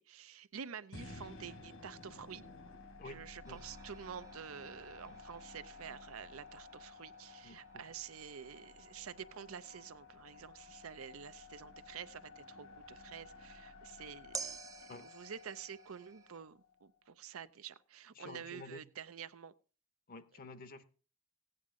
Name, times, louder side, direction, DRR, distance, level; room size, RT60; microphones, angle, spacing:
voice 1, 0.0-2.4 3.0-19.5, right 7 dB, 80° right, 0.6 m, -49 dB
sound 1, 0.9-17.1, left 3 dB, 70° left, 1.5 m, -54 dB
voice 2, 3.0-3.6 5.1-5.2 7.4-7.6 14.9-15.1 18.2-18.8 20.1-20.8, left 2 dB, 45° left, 0.7 m, -50 dB
sound 2, 3.4-12.9 14.3-16.4, right 5 dB, 15° right, 0.5 m, -53 dB
15.5 x 9.2 x 3.7 m
head